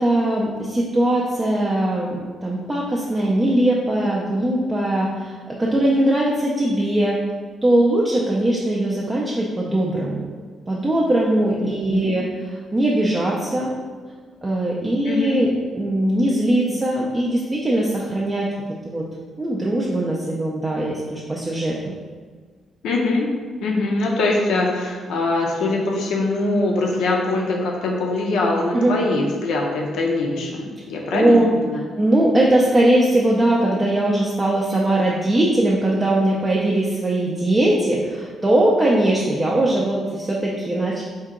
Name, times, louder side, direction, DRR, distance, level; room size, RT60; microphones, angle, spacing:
voice 1, 0.0-7.2 7.6-10.3 10.7-13.7 14.4-15.5 15.7-18.5 18.8-19.0 19.4-21.9 28.7-29.0 31.1-31.5 32.0-41.0, right 1 dB, 15° right, -4 dB, 0.4 m, -20 dB
voice 2, 11.6-12.3 15.0-15.5 22.8-23.3 23.6-31.8, left 2 dB, 80° left, 0 dB, 0.6 m, -23 dB
4.4 x 2.8 x 3.6 m, 1.5 s
cardioid pair, 175°, 0 cm